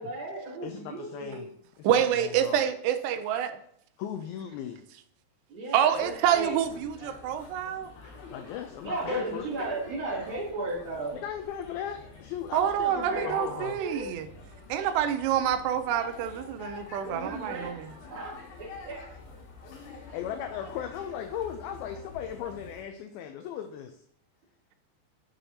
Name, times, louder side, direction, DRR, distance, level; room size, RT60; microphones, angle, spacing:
voice 1, 0.0-1.5 5.5-6.5 8.8-11.2 12.9-14.1 17.0-19.0, right 2 dB, 35° right, -6 dB, 2.7 m, -35 dB
voice 2, 0.6-1.5 1.8-2.6 4.0-4.8 8.3-9.5 11.1-13.8 19.9-24.0, left 9 dB, 85° left, 7 dB, 2.1 m, -37 dB
voice 3, 1.8-3.6 5.7-7.9 12.5-14.3 14.7-17.9, right 9 dB, 85° right, 10 dB, 2.7 m, -27 dB
sound 1, 4.5-4.6 6.2-7.1 8.0-8.6 8.8-9.9, left 2 dB, 40° left, 2.5 m, -44 dB
sound 2, 5.9-22.8, left 4 dB, 70° left, 3.1 m, -48 dB
8.8 x 5.6 x 2.7 m, 0.68 s
omnidirectional pair, 4.8 m